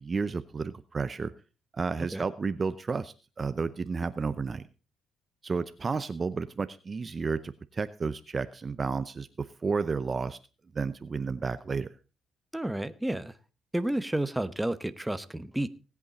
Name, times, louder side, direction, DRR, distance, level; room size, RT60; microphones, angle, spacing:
voice 1, 0.0-1.3 1.7-4.6 5.4-10.4 10.7-11.9, right 4 dB, 35° right, 13 dB, 0.7 m, -32 dB
voice 2, 12.5-13.4 13.7-15.7, right 1 dB, 10° right, 11 dB, 0.9 m, -31 dB
18.5 x 8.4 x 4.1 m, 0.32 s
cardioid pair, 90°, 0 cm